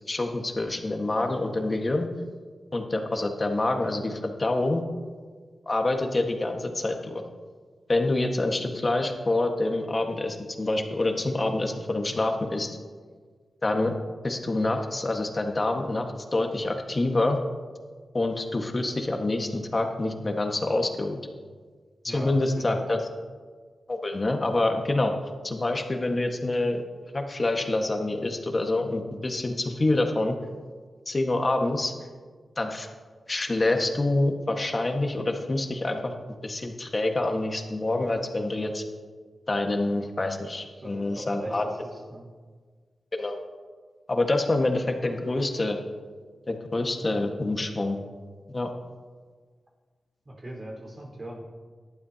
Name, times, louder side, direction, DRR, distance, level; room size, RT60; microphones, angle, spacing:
voice 1, 0.1-2.1 2.7-4.8 5.7-7.2 7.9-12.7 13.6-14.0 14.2-17.4 18.1-21.2 22.0-23.0 23.9-25.1 25.4-26.8 27.1-30.4 31.1-31.9 32.6-32.9 33.3-36.1 36.4-38.8 39.5-41.6 43.1-43.4 44.1-45.8 46.5-48.0 48.5-48.7, left 2 dB, 35° left, 3 dB, 1.6 m, -26 dB
voice 2, 22.0-23.0 40.8-42.3 50.2-51.5, right 1 dB, 40° right, -1 dB, 4.5 m, -40 dB
18.0 x 12.0 x 2.9 m, 1.5 s
wide cardioid pair, 75°, 0 cm